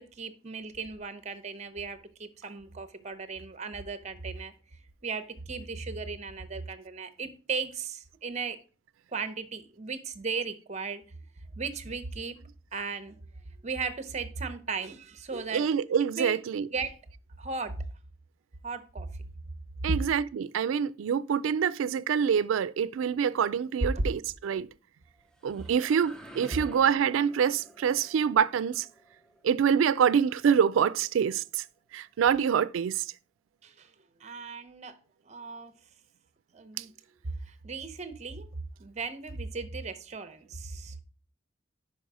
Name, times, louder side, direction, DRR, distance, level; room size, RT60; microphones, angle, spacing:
voice 1, 0.0-4.5 5.0-8.6 9.1-11.0 11.6-12.4 12.7-13.2 13.6-15.8 16.2-16.4 16.7-17.0 17.4-17.7 18.6-19.1 19.8-20.0 25.6-26.0 33.6-33.9 34.2-35.0 35.3-35.7 36.5-36.9 37.4-38.5 38.8-41.0, right 4 dB, 35° right, 0.7 m, -36 dB
voice 2, 15.5-16.7 19.8-24.7 25.4-28.9 29.4-31.6 31.9-33.1 36.8-36.9, right 7 dB, 90° right, 0.3 m, -26 dB
sound 1, 25.1-30.8, right 1 dB, 5° left, 0.5 m, -51 dB
5.5 x 5.4 x 4.8 m
head